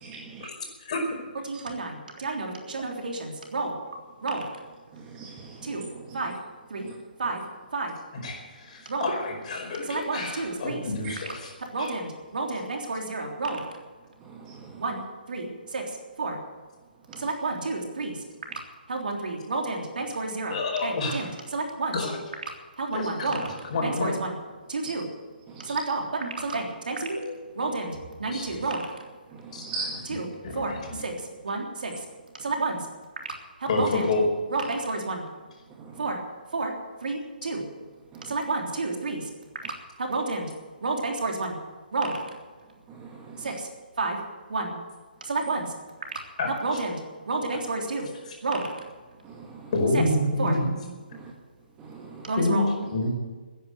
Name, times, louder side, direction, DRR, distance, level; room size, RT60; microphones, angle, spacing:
voice 1, 0.0-0.5 5.0-6.2 6.8-6.9 11.0-11.1 14.2-14.8 17.1-17.3 25.5-25.8 29.3-30.0 35.8-36.1 38.1-38.4 42.9-43.5 49.2-49.7 51.2-51.3 51.8-52.3, right 4 dB, 20° right, 1 dB, 1.6 m, -40 dB
voice 2, 1.5-3.7 4.2-4.4 5.6-5.8 6.1-6.3 6.7-6.9 7.2-7.4 7.7-7.9 8.9-9.1 9.9-10.8 11.7-13.6 14.8-15.0 15.3-15.8 16.2-16.4 17.2-18.2 18.9-20.6 20.8-22.0 22.8-23.4 23.8-24.3 24.7-25.0 25.6-28.8 30.1-30.3 30.6-30.7 31.0-31.1 31.4-31.9 32.4-32.8 33.8-34.1 34.5-35.2 36.0-36.2 36.5-36.7 37.0-37.6 38.3-39.2 40.1-40.5 40.8-41.6 41.9-42.2 43.4-43.7 44.0-44.2 44.5-44.7 45.2-45.7 46.6-47.0 47.3-48.1 48.4-48.7 50.4-50.5 52.3-52.7, right 3 dB, 65° right, 2 dB, 3.4 m, -30 dB
voice 3, 8.1-11.5 11.8-11.9 20.5-21.3 21.9-22.2 22.9-24.1 28.2-28.7 29.5-30.2 30.4-31.0 33.6-34.3 46.4-46.8 48.3-48.4 49.7-50.8 52.4-53.1, left 2 dB, 45° left, 1 dB, 5.0 m, -28 dB
15.5 x 10.5 x 8.1 m, 1.4 s
figure-of-eight pair, 140°, 5 cm